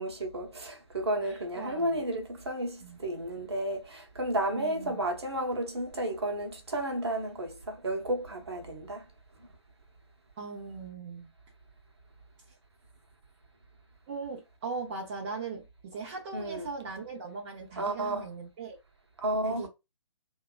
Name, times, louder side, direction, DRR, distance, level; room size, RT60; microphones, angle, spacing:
voice 1, 0.0-9.0 16.3-16.7 17.8-18.3 19.2-19.7, right 1 dB, 55° right, 0.9 m, -32 dB
voice 2, 1.2-2.0 2.8-3.0 4.5-5.0 10.4-11.3 14.1-18.8 19.4-19.7, right 4 dB, 25° right, 0.6 m, -39 dB
2.8 x 2.2 x 2.3 m
figure-of-eight pair, 135°, 16 cm